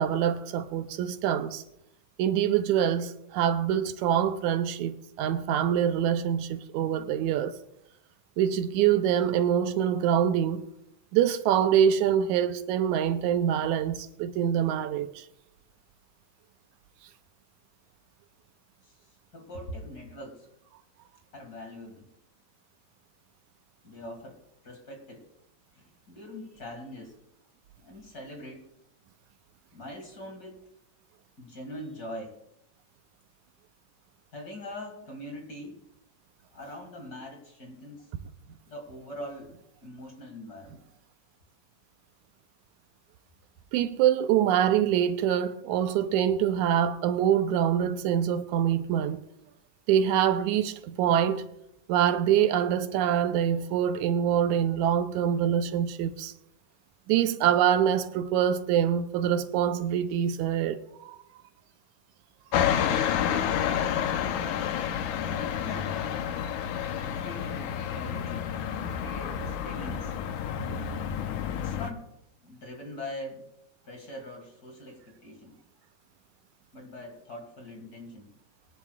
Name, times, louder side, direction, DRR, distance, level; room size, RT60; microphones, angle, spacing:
voice 1, 0.0-1.6 2.2-7.5 8.4-10.6 11.1-15.3 43.7-49.2 49.9-51.4 51.9-56.3 57.1-61.2, right 9 dB, 85° right, 2.0 m, -25 dB
voice 2, 18.8-20.5 21.3-22.1 23.8-24.4 24.6-25.2 25.7-27.2 27.8-28.7 29.7-30.6 31.4-32.4 34.3-35.8 36.5-38.1 38.7-39.6 39.8-40.8 65.3-66.0 66.9-68.5 68.9-70.2 71.5-72.1 72.4-73.4 73.9-75.6 76.7-78.3, left 1 dB, 35° left, 2.1 m, -42 dB
sound 1, 62.5-71.9, left 9 dB, 85° left, 2.3 m, -29 dB
23.0 x 10.5 x 2.4 m
omnidirectional pair, 3.4 m